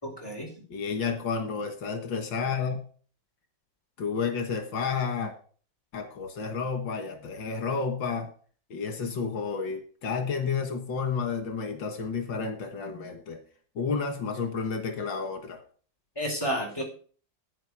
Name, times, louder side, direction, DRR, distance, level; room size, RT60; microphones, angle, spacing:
voice 1, 0.0-0.5 16.2-16.8, equal, 10° left, -1 dB, 4.5 m, -31 dB
voice 2, 0.7-2.8 4.0-5.3 5.9-8.3 8.7-13.4 13.8-15.6, left 5 dB, 85° left, 5 dB, 2.3 m, -31 dB
10.5 x 9.5 x 4.8 m, 0.42 s
omnidirectional pair, 2.0 m